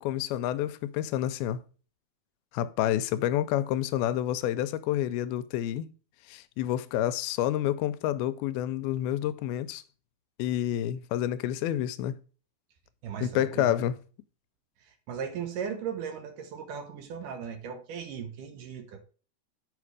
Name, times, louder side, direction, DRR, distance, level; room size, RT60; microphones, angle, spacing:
voice 1, 0.0-1.6 2.5-5.9 6.3-9.8 10.4-12.2 13.2-14.0, left 12 dB, 85° left, 2.4 m, -29 dB
voice 2, 13.0-13.7 14.8-19.0, right 7 dB, 70° right, 2.3 m, -37 dB
8.3 x 5.0 x 4.7 m
omnidirectional pair, 4.3 m